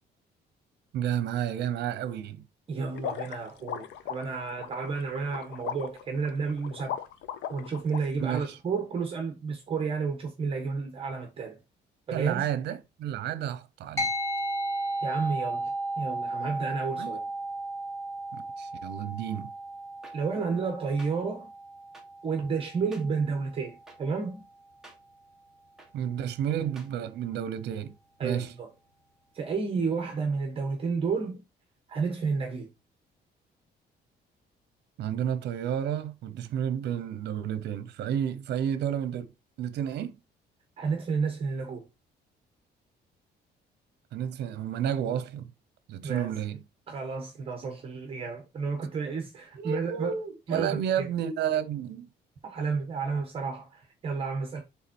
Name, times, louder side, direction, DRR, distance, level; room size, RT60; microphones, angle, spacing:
voice 1, 0.9-2.4 8.2-8.6 12.1-14.1 17.0-17.2 18.3-19.5 25.9-27.9 28.2-28.5 35.0-39.3 39.6-40.2 44.1-45.5 45.9-46.6 49.6-52.1, right 9 dB, 70° right, 0.9 m, -31 dB
voice 2, 2.7-7.0 7.5-11.6 12.1-12.4 15.0-15.7 16.0-17.2 20.1-21.5 22.2-24.4 28.2-28.7 29.3-31.4 31.9-32.7 40.8-41.9 46.0-46.3 46.9-50.1 50.5-51.1 52.4-54.6, right 5 dB, 30° right, 1.2 m, -31 dB
sound 1, 2.9-8.0, left 9 dB, 85° left, 0.7 m, -37 dB
sound 2, 14.0-23.7, right 1 dB, 15° left, 1.5 m, -35 dB
sound 3, 20.0-20.1 21.0-21.1 21.9-22.0 22.9-23.0 23.9-24.0 24.8-25.0 25.8-25.9 26.7-26.9, right 2 dB, 5° right, 1.4 m, -49 dB
7.3 x 3.7 x 4.4 m
cardioid pair, 180°, 18 cm